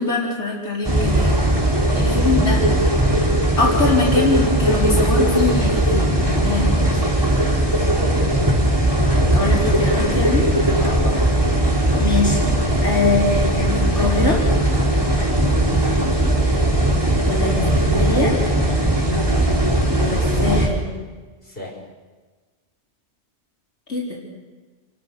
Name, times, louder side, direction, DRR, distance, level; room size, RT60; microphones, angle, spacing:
voice 1, 0.0-1.5 1.9-2.6 3.6-7.0 9.3-10.5 12.0-12.6 12.8-14.4 17.3-18.3 19.9-20.8 23.9-24.2, left 3 dB, 90° left, -3 dB, 4.8 m, -23 dB
sound 1, 0.9-20.7, right 1 dB, 20° right, 3.8 m, -18 dB
voice 2, 2.0-2.6 7.9-8.6 10.8-11.3 15.4-16.1 19.1-19.5 21.4-21.8, left 1 dB, 55° left, -1 dB, 6.3 m, -34 dB
28.5 x 23.0 x 6.8 m, 1.3 s
omnidirectional pair, 1.1 m